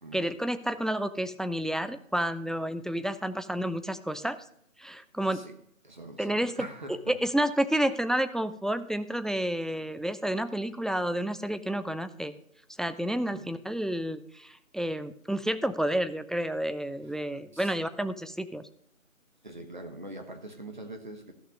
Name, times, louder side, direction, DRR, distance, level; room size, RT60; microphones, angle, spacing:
voice 1, 0.1-4.4 4.8-5.4 6.2-12.3 12.8-18.6, right 1 dB, ahead, 12 dB, 0.3 m, -30 dB
voice 2, 5.8-7.1 13.3-13.5 17.1-17.7 19.4-21.3, right 1 dB, 35° right, 6 dB, 1.1 m, -43 dB
13.5 x 6.0 x 5.1 m, 0.69 s
figure-of-eight pair, 175°, 41 cm